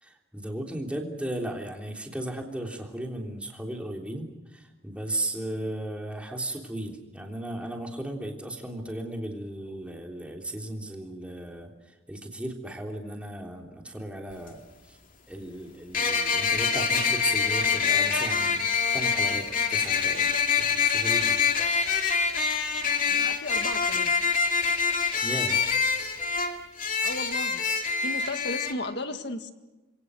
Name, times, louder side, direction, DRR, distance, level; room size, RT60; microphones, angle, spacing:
voice 1, 0.0-15.0 15.3-18.7 18.9-21.4 25.2-25.6 25.9-26.1, right 1 dB, 5° right, 1 dB, 3.3 m, -36 dB
sound 1, 14.3-14.4 15.9-28.7, left 6 dB, 45° left, 2.5 m, -25 dB
voice 2, 23.1-24.1 27.0-27.6 28.0-29.5, left 2 dB, 60° left, 7 dB, 1.9 m, -35 dB
27.5 x 23.0 x 6.4 m, 1.1 s
head